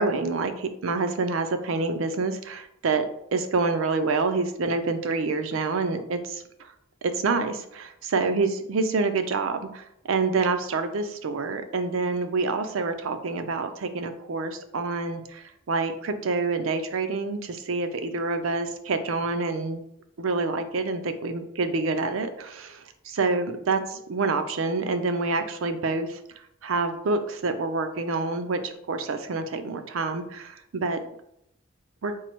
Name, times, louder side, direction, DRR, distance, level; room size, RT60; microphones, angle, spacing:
voice 1, 0.0-6.4 7.0-19.8 20.2-23.8 24.1-26.2 26.6-31.0 32.0-32.1, right 3 dB, 75° right, 8 dB, 0.5 m, -27 dB
4.5 x 2.0 x 4.4 m, 0.76 s
head